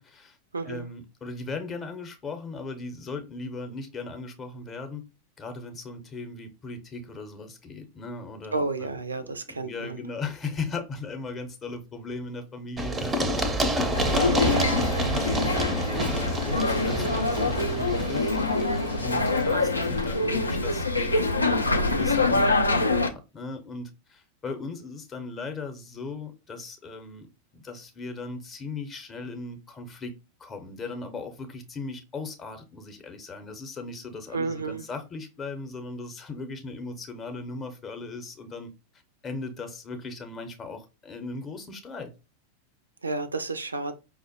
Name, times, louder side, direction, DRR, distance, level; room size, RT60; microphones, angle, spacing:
voice 1, 0.0-0.4 0.6-5.0 5.4-13.2 13.7-27.3 27.5-30.1 30.4-38.7 39.2-42.1, left 3 dB, 25° left, 0.6 m, -38 dB
voice 2, 0.5-0.9 8.5-10.0 34.3-34.9 43.0-43.9, right 3 dB, 75° right, 0.3 m, -31 dB
Run, 12.8-20.4, right 1 dB, 15° right, 0.5 m, -29 dB
sound 1, 13.9-23.1, left 2 dB, 80° left, 0.4 m, -25 dB
4.9 x 2.0 x 2.7 m
figure-of-eight pair, 90°, 0 cm